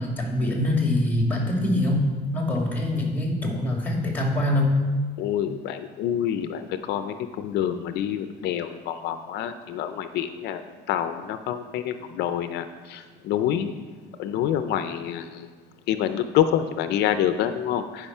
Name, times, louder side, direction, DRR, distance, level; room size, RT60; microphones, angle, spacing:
voice 1, 0.0-4.8, left 1 dB, 10° left, 0 dB, 2.3 m, -24 dB
voice 2, 5.2-10.6 10.9-13.7 14.2-15.5 15.9-18.1, left 10 dB, 80° left, 10 dB, 0.5 m, -27 dB
10.5 x 5.0 x 5.5 m, 1.4 s
cardioid pair, 110°, 17 cm